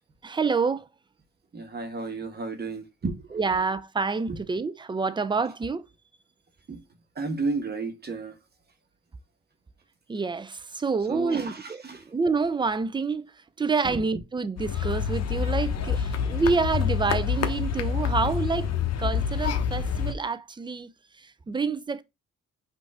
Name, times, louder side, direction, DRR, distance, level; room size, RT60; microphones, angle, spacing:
voice 1, 0.2-0.9 3.3-5.9 10.1-13.3 13.6-18.7 19.0-20.9 21.2-22.0, right 4 dB, 15° right, 0.5 m, -28 dB
voice 2, 1.5-3.4 4.3-4.4 6.7-6.8 7.2-8.3 11.1-12.0 13.8-14.0, right 3 dB, 35° right, 1.2 m, -32 dB
sound 1, 14.6-20.1, left 7 dB, 55° left, 0.9 m, -27 dB
5.4 x 2.7 x 3.5 m
cardioid pair, 90°, 30 cm